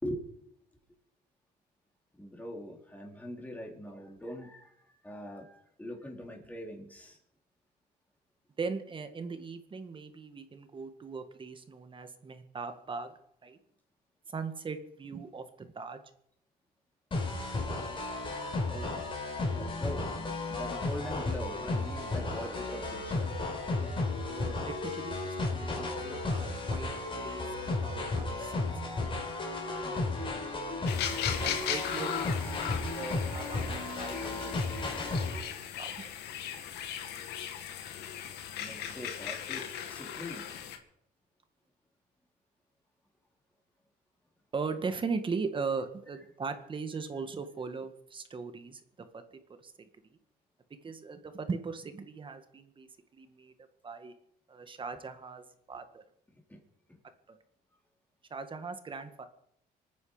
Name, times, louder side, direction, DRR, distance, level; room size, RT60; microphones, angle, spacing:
voice 1, 2.2-7.2 18.6-19.0 19.5-23.4 25.5-25.7 38.6-40.4 56.5-56.6 56.9-57.0, equal, 10° left, 0 dB, 4.2 m, -42 dB
voice 2, 8.6-13.6 14.3-16.0 24.3-25.6 26.0-26.9 27.2-28.7 29.2-29.4 29.7-29.9 30.2-30.4 31.4-36.1 44.5-48.8 49.1-49.2 49.6-49.7 50.8-53.5 53.8-54.1 54.5-56.0 57.3-57.4 58.3-59.3, right 4 dB, 30° right, 9 dB, 1.8 m, -39 dB
sound 1, 17.1-35.4, left 2 dB, 30° left, 4.6 m, -34 dB
sound 2, 30.9-40.8, left 9 dB, 80° left, 2.2 m, -38 dB
25.5 x 9.6 x 5.1 m, 0.73 s
cardioid pair, 110°, 17 cm